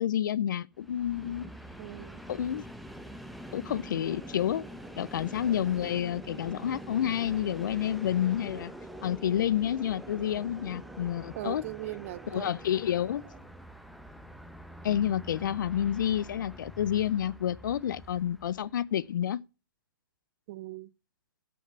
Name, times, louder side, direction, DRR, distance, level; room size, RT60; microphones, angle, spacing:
voice 1, 0.0-1.5 2.3-2.6 3.5-4.6 5.0-8.7 9.0-11.6 12.3-13.2 14.8-19.4, left 10 dB, 60° left, 0.6 m, -29 dB
Train, 0.7-18.9, equal, ahead, 1.0 m, -45 dB
voice 2, 1.8-2.2 11.4-12.5 20.5-20.9, right 17 dB, 40° right, 0.6 m, -39 dB
sound 1, 3.9-13.5, right 8 dB, 20° right, 1.9 m, -54 dB
10.0 x 6.4 x 6.6 m
hypercardioid pair, 140°, 12 cm